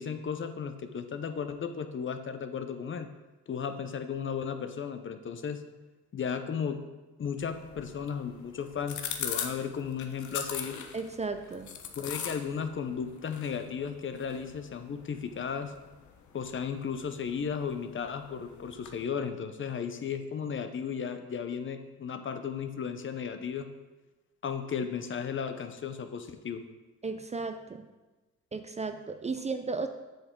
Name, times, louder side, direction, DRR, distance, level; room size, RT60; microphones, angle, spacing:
voice 1, 0.0-3.1 3.5-5.6 6.1-6.8 7.2-10.8 12.0-15.7 16.3-23.7 24.4-26.6, left 6 dB, 40° left, 8 dB, 0.7 m, -35 dB
sound 1, 7.4-19.0, left 8 dB, 75° left, 0.9 m, -42 dB
voice 2, 10.9-11.7 27.0-27.9 28.5-29.9, right 4 dB, 20° right, 8 dB, 0.5 m, -34 dB
7.7 x 7.0 x 3.7 m, 1.1 s
cardioid pair, 90°, 30 cm